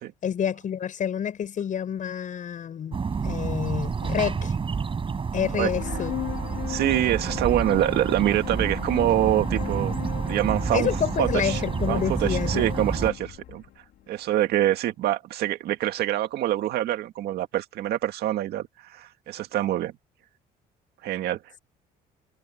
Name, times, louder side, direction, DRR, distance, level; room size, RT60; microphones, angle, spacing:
voice 1, 0.2-3.0 3.2-4.5 5.3-6.1 10.7-12.7, left 8 dB, 50° left, 7.0 m, -28 dB
sound 1, 2.9-13.1, right 5 dB, 30° right, 5.8 m, -29 dB
voice 2, 5.5-6.0 6.7-9.9 10.2-10.9 11.2-11.6 11.9-13.6 14.1-19.9 21.0-21.6, right 13 dB, 75° right, 2.0 m, -25 dB
sound 2, 5.7-14.2, left 13 dB, 75° left, 4.8 m, -36 dB
cardioid pair, 110°, 17 cm